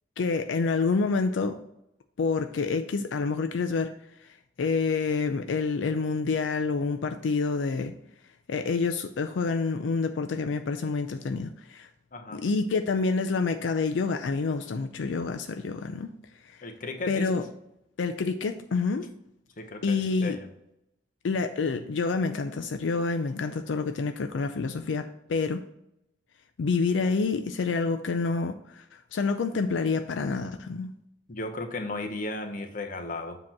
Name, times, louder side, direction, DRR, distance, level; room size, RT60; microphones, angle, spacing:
voice 1, 0.2-1.6 2.2-3.9 4.6-8.0 8.5-11.9 12.3-16.1 16.4-16.6 17.1-17.4 18.0-19.1 19.8-20.4 21.2-25.6 26.6-30.9, left 4 dB, 85° left, 6 dB, 0.4 m, -28 dB
voice 2, 12.1-12.4 16.6-17.4 19.6-20.5 31.3-33.4, left 2 dB, 45° left, 5 dB, 0.8 m, -35 dB
7.5 x 2.9 x 5.9 m, 0.81 s
head